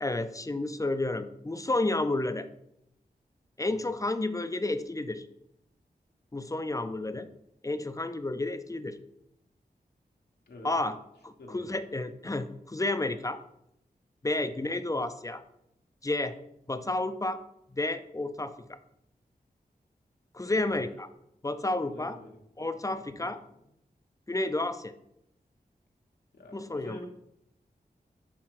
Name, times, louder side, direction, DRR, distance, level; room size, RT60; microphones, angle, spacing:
voice 1, 0.0-2.5 3.6-5.3 6.3-7.3 7.6-9.0 10.6-11.0 11.2-13.4 14.2-15.4 16.0-16.4 16.7-17.4 17.7-18.6 20.3-21.1 21.4-22.2 22.6-23.4 24.3-24.9 26.5-27.1, left 2 dB, 20° left, 10 dB, 0.5 m, -31 dB
voice 2, 11.4-11.7 14.4-14.7 20.4-20.9 21.8-23.6 26.3-27.1, left 2 dB, 85° left, 2 dB, 1.2 m, -49 dB
7.4 x 3.5 x 4.7 m, 0.78 s
wide cardioid pair, 60°, 16 cm